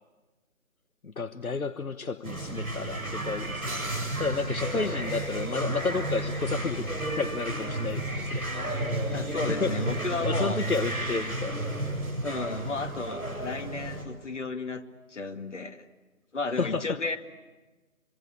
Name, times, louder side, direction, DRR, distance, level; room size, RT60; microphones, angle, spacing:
voice 1, 1.0-3.9 4.2-8.7 9.4-11.7 16.5-17.0, left 4 dB, 80° left, 11 dB, 1.2 m, -32 dB
sound 1, 2.2-14.0, right 1 dB, 85° right, 6.9 m, -32 dB
voice 2, 9.1-10.6 12.2-14.8 15.1-15.9 16.3-17.2, left 3 dB, 55° left, 5 dB, 2.4 m, -33 dB
27.5 x 24.5 x 8.4 m, 1.2 s
figure-of-eight pair, 155°, 42 cm